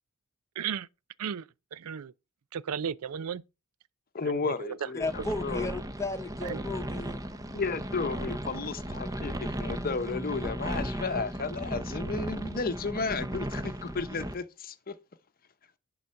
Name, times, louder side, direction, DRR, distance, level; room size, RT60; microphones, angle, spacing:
voice 1, 0.6-0.9 1.2-1.5 1.7-2.1 2.5-3.4 4.2-4.9 5.2-5.3 6.4-6.6, right 7 dB, 75° right, 0.4 m, -34 dB
voice 2, 4.1-5.7 7.5-15.0, left 4 dB, 40° left, 0.8 m, -33 dB
voice 3, 5.0-7.2, left 3 dB, 15° left, 1.0 m, -34 dB
sound 1, 5.0-14.3, right 1 dB, 15° right, 0.7 m, -36 dB
11.0 x 3.9 x 5.7 m
head